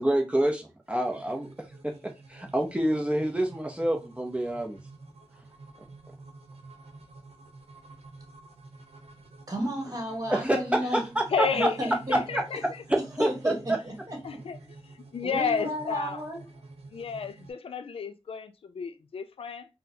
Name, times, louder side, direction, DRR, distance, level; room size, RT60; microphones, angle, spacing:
voice 1, 0.0-1.5 1.8-4.8 10.3-11.7 12.1-12.4 12.9-13.3, right 1 dB, 10° right, 0.6 m, -27 dB
sound 1, 0.8-17.5, right 3 dB, 85° right, 0.7 m, -49 dB
voice 2, 9.5-11.0 11.5-12.2 13.2-14.2 15.2-16.4, equal, 35° right, 1.3 m, -33 dB
voice 3, 11.3-12.6 14.2-14.6 14.9-16.2 16.9-19.7, left 6 dB, 65° left, 0.5 m, -32 dB
3.8 x 2.1 x 2.7 m
cardioid pair, 65°, 10 cm